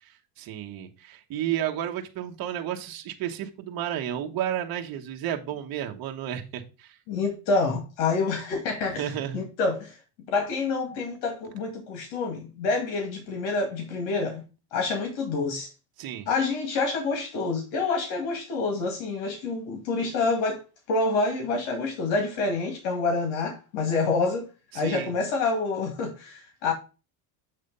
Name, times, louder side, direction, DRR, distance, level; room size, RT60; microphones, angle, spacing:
voice 1, 0.0-7.0 9.0-9.4 16.0-16.3 24.7-25.1, right 10 dB, 45° right, 1.2 m, -32 dB
voice 2, 7.1-9.0 9.3-10.0 10.3-14.4 14.7-15.7 16.3-20.6 20.9-24.4 24.7-26.7, left 3 dB, 75° left, 2.1 m, -27 dB
7.7 x 3.3 x 5.4 m
cardioid pair, 135°, 49 cm